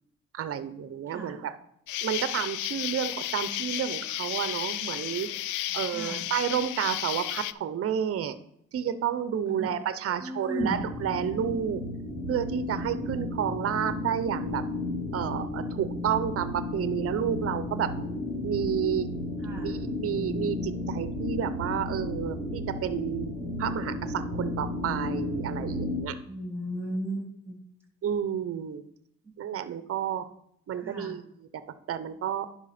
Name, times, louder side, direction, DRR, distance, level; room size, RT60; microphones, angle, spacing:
voice 1, 0.3-1.5 2.0-5.3 5.7-8.4 8.7-11.8 12.3-14.6 15.1-17.9 18.4-19.1 19.6-23.3 23.6-26.2 28.0-28.8 29.4-30.3 30.7-31.2 31.5-31.6 31.9-32.5, right 9 dB, 50° right, 13 dB, 0.7 m, -30 dB
voice 2, 1.1-1.4 5.9-6.3 9.5-9.7 10.1-10.8 19.4-19.7 26.2-27.6 30.8-31.1, right 1 dB, 10° right, 1 dB, 2.8 m, -35 dB
Insect, 1.9-7.5, left 14 dB, 85° left, 0.5 m, -33 dB
sound 1, 10.6-26.0, left 1 dB, 30° left, 3.2 m, -33 dB
10.5 x 5.0 x 4.2 m, 0.76 s
cardioid pair, 90°, 30 cm